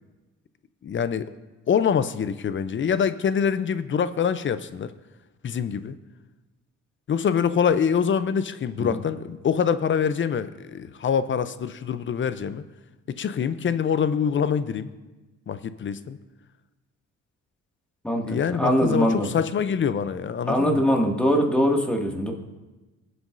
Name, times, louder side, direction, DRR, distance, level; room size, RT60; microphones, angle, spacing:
voice 1, 0.8-1.3 1.7-4.9 5.4-6.0 7.1-12.6 13.2-14.9 15.5-16.2 18.2-20.8, left 7 dB, 40° left, 13 dB, 0.6 m, -25 dB
voice 2, 18.0-19.3 20.5-22.3, equal, 5° left, 0 dB, 2.0 m, -22 dB
23.0 x 7.9 x 2.6 m, 1.1 s
cardioid pair, 90°, 30 cm